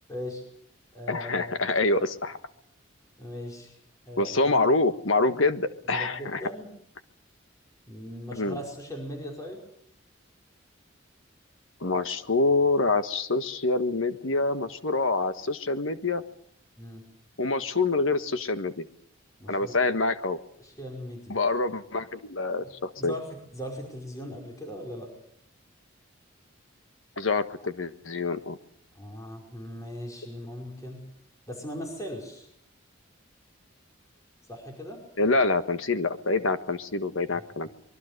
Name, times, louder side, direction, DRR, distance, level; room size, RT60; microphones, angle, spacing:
voice 1, 0.1-0.4 0.9-1.6 3.2-3.8 4.1-4.6 5.9-6.7 7.9-9.6 16.8-17.1 19.4-19.8 20.6-21.4 22.6-25.1 28.9-31.0 31.5-32.5 34.5-35.0 37.3-37.4, equal, 15° left, 0 dB, 5.2 m, -39 dB
voice 2, 1.1-2.4 4.2-6.4 8.3-8.6 11.8-16.2 17.4-18.8 19.5-20.4 21.3-23.1 27.2-28.6 35.2-37.7, left 3 dB, 75° left, 10 dB, 1.6 m, -26 dB
25.0 x 23.0 x 6.7 m, 0.67 s
head